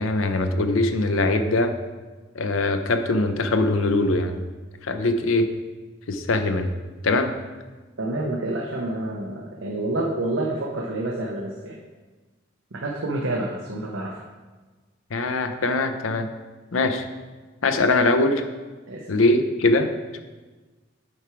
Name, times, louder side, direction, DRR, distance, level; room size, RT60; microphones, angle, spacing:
voice 1, 0.0-1.7 2.3-4.4 4.8-5.5 6.1-6.7 7.0-7.3 15.1-16.3 16.7-17.1 17.6-18.4 19.1-19.9 20.1-20.2, left 2 dB, 85° left, 8 dB, 0.7 m, -22 dB
voice 2, 8.0-11.8 12.7-14.2 18.9-19.1, right 2 dB, 70° right, -1 dB, 0.8 m, -28 dB
8.7 x 4.8 x 4.6 m, 1.3 s
head